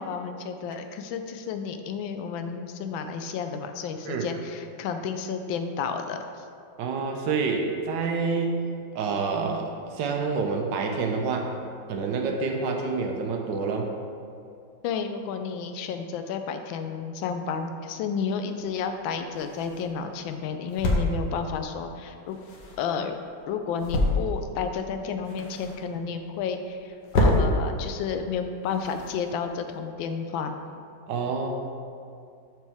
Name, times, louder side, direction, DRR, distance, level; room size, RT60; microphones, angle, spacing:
voice 1, 0.0-6.2 14.8-22.4 22.8-23.2 23.5-30.5, left 6 dB, 85° left, 7 dB, 1.3 m, -31 dB
voice 2, 6.8-11.6 11.9-13.9 31.1-31.5, right 4 dB, 75° right, 2 dB, 1.3 m, -28 dB
sound 1, 18.6-29.8, left 1 dB, 65° left, 1.6 m, -30 dB
7.0 x 6.1 x 3.5 m, 2.4 s
omnidirectional pair, 2.1 m